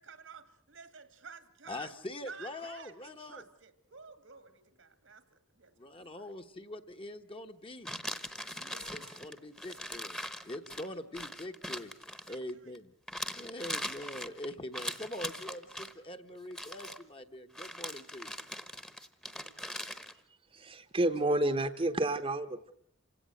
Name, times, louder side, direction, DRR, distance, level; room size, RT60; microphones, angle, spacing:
voice 1, 0.0-1.9 2.2-6.3 8.5-9.5 12.1-12.7, right 5 dB, 80° right, 11 dB, 2.2 m, -52 dB
voice 2, 1.7-3.4 5.8-7.9 8.9-12.9 13.4-18.3, left 1 dB, 30° left, 6 dB, 1.2 m, -43 dB
sound 1, 7.9-12.8 13.1-15.9 16.5-17.0 17.5-20.1, equal, 5° left, 1.1 m, -41 dB
voice 3, 20.5-22.7, right 1 dB, 30° right, 10 dB, 1.0 m, -30 dB
27.5 x 17.0 x 7.8 m, 0.67 s
head